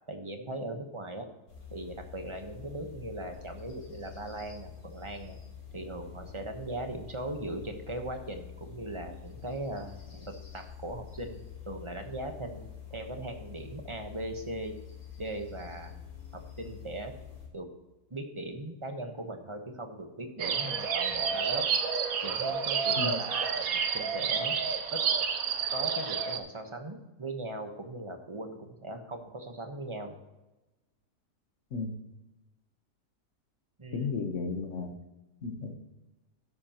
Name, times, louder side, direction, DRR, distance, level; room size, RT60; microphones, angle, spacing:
voice 1, 0.1-1.3 1.7-5.4 5.7-11.4 11.6-12.6 12.9-14.7 15.2-15.9 16.3-17.1 17.5-17.7 18.1-21.7 22.2-24.6 24.9-25.1 25.7-30.2 33.8-34.1, right 1 dB, 20° right, 5 dB, 1.1 m, -39 dB
sound 1, 1.5-17.5, left 8 dB, 70° left, 3.8 m, -47 dB
sound 2, 20.4-26.4, right 6 dB, 65° right, 1.2 m, -29 dB
voice 2, 22.9-23.3 31.7-32.0 33.9-34.9 35.4-35.7, left 4 dB, 50° left, 6 dB, 1.5 m, -34 dB
12.5 x 10.5 x 3.0 m, 1.0 s
omnidirectional pair, 1.7 m